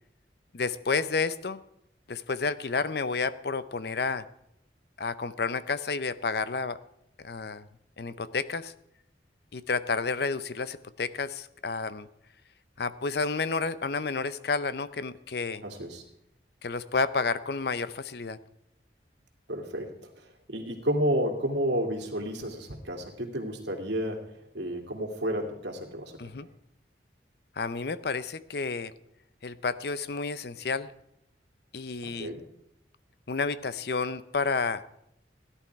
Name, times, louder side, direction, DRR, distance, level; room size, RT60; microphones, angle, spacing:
voice 1, 0.5-1.6 2.1-4.2 5.0-6.8 7.2-7.6 8.0-8.7 9.5-12.1 12.8-15.6 16.6-18.4 26.2-26.5 27.6-28.9 29.4-30.9 31.7-32.3 33.3-34.8, left 4 dB, 60° left, 15 dB, 0.6 m, -30 dB
voice 2, 15.6-16.0 19.5-26.2 32.0-32.4, equal, 75° right, 2 dB, 2.5 m, -31 dB
16.5 x 11.0 x 4.6 m, 0.79 s
head